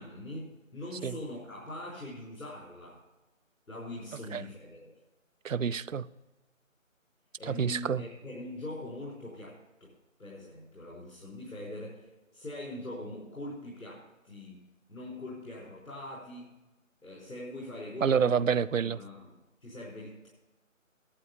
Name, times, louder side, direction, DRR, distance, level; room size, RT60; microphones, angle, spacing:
voice 1, 0.0-3.0 3.7-4.9 7.4-9.9 10.2-16.5 17.0-18.4 18.8-20.3, left 1 dB, 85° left, 5.0 m, -42 dB
voice 2, 5.4-6.1 7.4-8.0 18.0-19.0, right 7 dB, 70° right, 0.6 m, -28 dB
11.5 x 8.5 x 7.0 m
figure-of-eight pair, 175°, 40 cm